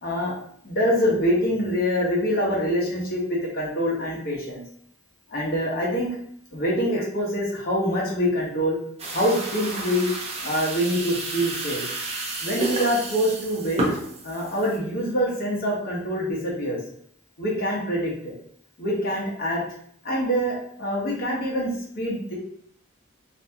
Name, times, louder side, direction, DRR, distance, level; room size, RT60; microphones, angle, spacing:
voice 1, 0.0-0.3 0.6-4.6 5.3-6.1 6.5-8.8 9.1-10.1 10.4-11.8 12.4-13.8 14.2-16.8 17.4-18.1 18.8-19.6 20.0-21.7 22.0-22.3, equal, 50° left, -4 dB, 0.9 m, -25 dB
sound 1, 9.0-14.8, right 2 dB, 35° right, 0.5 m, -31 dB
2.7 x 2.2 x 2.7 m, 0.66 s
head